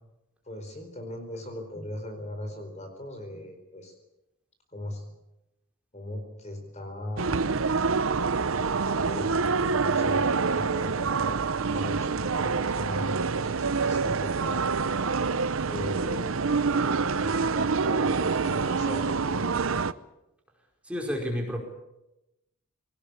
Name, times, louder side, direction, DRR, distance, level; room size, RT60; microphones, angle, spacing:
voice 1, 0.4-3.9 4.7-5.0 5.9-7.6 8.8-11.4 11.7-14.7 15.7-19.5, left 1 dB, 35° left, 6 dB, 4.3 m, -39 dB
sound 1, 7.2-19.9, right 4 dB, 70° right, 0.8 m, -26 dB
voice 2, 20.8-21.6, equal, 5° right, 0 dB, 4.8 m, -30 dB
23.0 x 19.0 x 8.4 m, 0.91 s
head